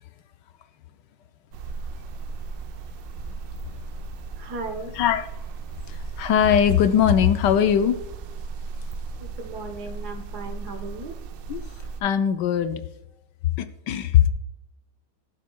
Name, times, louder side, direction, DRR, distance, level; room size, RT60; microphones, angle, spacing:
sound 1, 1.5-12.0, right 4 dB, 90° right, 1.4 m, -36 dB
voice 1, 4.4-4.9 9.2-11.1, right 3 dB, 65° right, 6 dB, 1.6 m, -36 dB
voice 2, 4.9-5.3 5.9-8.0 11.5-11.6 12.0-12.8 13.6-14.3, left 9 dB, 75° left, 10 dB, 1.3 m, -20 dB
14.5 x 7.4 x 2.3 m, 0.91 s
omnidirectional pair, 1.9 m